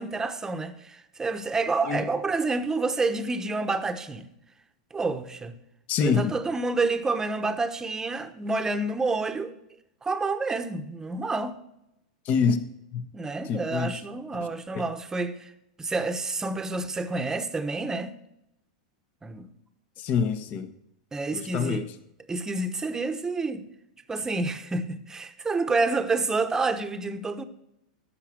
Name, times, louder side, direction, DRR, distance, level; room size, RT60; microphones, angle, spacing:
voice 1, 0.0-4.3 4.9-5.5 6.0-9.5 10.0-11.6 13.1-15.5 15.8-18.2 19.2-19.5 21.1-21.8 22.3-23.7 24.1-27.4, right 3 dB, 15° right, 1.0 m, -28 dB
voice 2, 5.9-6.4 12.2-12.6 12.9-13.1 13.4-14.0 14.4-14.5 14.7-14.8 20.0-20.7 21.3-21.9, left 6 dB, 45° left, 1.2 m, -26 dB
13.5 x 5.9 x 6.0 m
hypercardioid pair, 110°, 4 cm